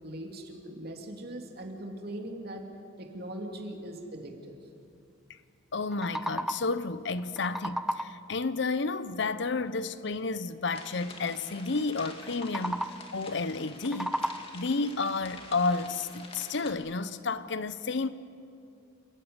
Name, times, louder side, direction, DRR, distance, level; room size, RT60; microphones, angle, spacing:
voice 1, 0.0-2.6 3.0-4.6, right 1 dB, 50° right, 2.8 m, -40 dB
voice 2, 5.7-14.1 14.5-18.1, left 3 dB, 65° left, 0.8 m, -31 dB
sound 1, 5.7-6.8 7.2-8.3 12.3-13.2 13.6-14.7, equal, ahead, 0.5 m, -34 dB
sound 2, 10.7-16.7, left 3 dB, 30° left, 2.2 m, -48 dB
28.5 x 14.0 x 9.6 m
head